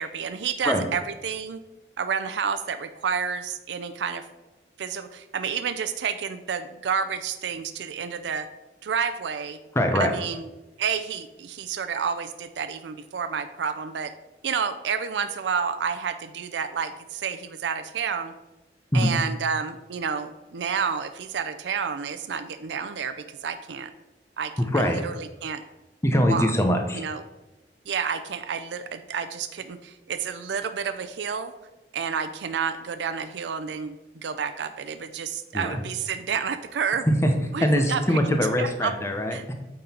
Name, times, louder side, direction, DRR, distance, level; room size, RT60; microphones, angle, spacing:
voice 1, 0.0-1.6 2.0-4.2 4.8-8.5 8.8-9.6 9.9-10.5 10.8-14.1 14.4-18.3 18.9-23.9 24.4-25.6 26.3-26.5 26.9-27.2 27.9-31.5 31.9-37.1 37.5-38.2 38.6-38.9 39.3-39.4, right 6 dB, 80° right, 10 dB, 0.4 m, -30 dB
voice 2, 9.7-10.1 18.9-19.1 24.6-25.0 26.0-27.0 35.5-35.8 37.1-37.3 37.6-39.5, equal, 15° left, 4 dB, 0.8 m, -22 dB
9.0 x 3.9 x 4.3 m, 1.0 s
head